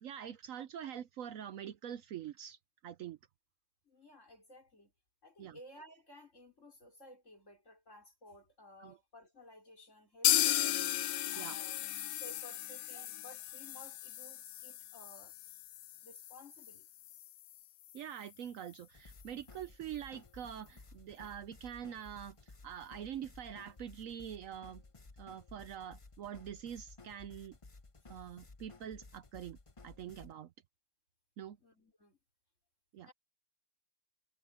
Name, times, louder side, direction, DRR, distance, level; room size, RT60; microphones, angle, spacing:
voice 1, 0.0-3.2 5.4-5.6 8.8-9.0 11.4-11.6 12.9-13.1 17.9-24.8 25.2-27.6 28.1-29.6 29.8-30.5 31.4-31.6 32.9-33.1, right 9 dB, 65° right, 1.0 m, -45 dB
voice 2, 3.9-4.9 5.2-11.8 12.2-15.4 16.0-16.9 28.1-28.2 31.6-32.2 33.0-33.1, left 1 dB, 55° left, 5.3 m, -56 dB
sound 1, 10.2-18.0 18.3-18.4 18.7-18.8 19.2-19.3, left 15 dB, 75° left, 1.0 m, -36 dB
sound 2, 18.9-30.3, left 3 dB, 25° left, 0.9 m, -56 dB
omnidirectional pair, 1.6 m